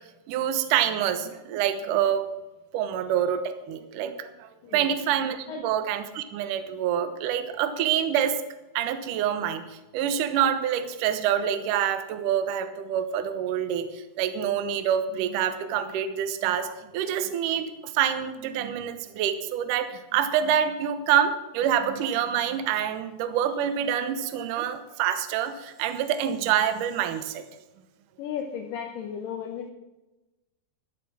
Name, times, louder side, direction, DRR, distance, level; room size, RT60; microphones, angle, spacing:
voice 1, 0.3-2.3 2.7-8.4 8.7-9.6 9.9-27.4, right 9 dB, 75° right, 10 dB, 2.0 m, -26 dB
voice 2, 4.6-5.0 5.5-5.6 28.2-29.7, left 8 dB, 75° left, 3 dB, 2.1 m, -34 dB
13.5 x 8.2 x 6.1 m, 1.0 s
omnidirectional pair, 4.8 m